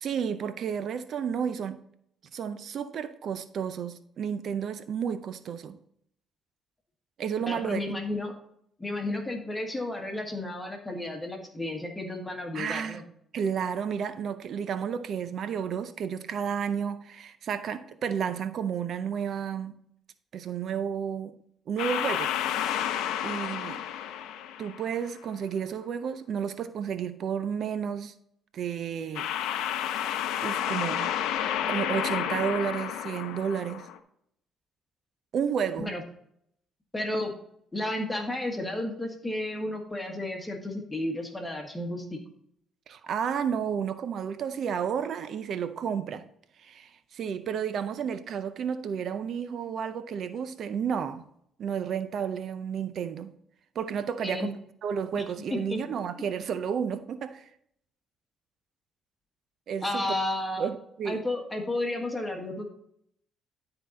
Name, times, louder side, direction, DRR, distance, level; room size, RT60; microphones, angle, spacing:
voice 1, 0.0-1.8 2.3-5.8 7.2-7.8 12.5-13.0 13.3-19.7 20.3-21.4 21.7-22.8 23.2-23.8 24.6-28.1 28.5-29.3 30.4-31.1 31.7-33.9 35.3-35.9 42.9-46.3 46.6-51.2 51.6-53.3 53.7-54.5 54.8-57.4 59.7-60.0 60.6-61.2, right 7 dB, 65° right, 0.5 m, -31 dB
voice 2, 7.4-8.3 8.8-13.0 35.8-36.0 36.9-37.3 37.7-42.2 54.2-54.5 55.1-55.2 55.7-55.8 59.8-60.7 61.1-62.6, left 1 dB, 15° left, 1.6 m, -32 dB
sound 1, 21.8-25.1 29.1-34.0, left 10 dB, 80° left, 0.6 m, -31 dB
11.5 x 3.9 x 4.1 m
supercardioid pair, 70°, 0 cm